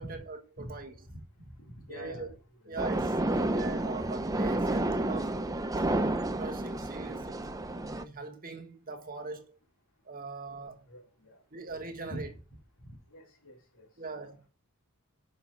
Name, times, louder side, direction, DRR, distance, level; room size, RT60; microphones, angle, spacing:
voice 1, 0.0-0.9 1.9-2.3 2.7-5.4 5.8-9.6 10.0-10.9 11.5-12.3 14.0-14.4, right 4 dB, 40° right, 1.3 m, -41 dB
voice 2, 1.0-1.5 1.9-2.4 2.7-3.0 10.9-11.4 12.1-12.2 12.8-14.5, equal, 75° left, 2.8 m, -46 dB
sound 1, 2.8-8.0, right 1 dB, 15° right, 0.5 m, -30 dB
7.0 x 5.5 x 6.6 m
head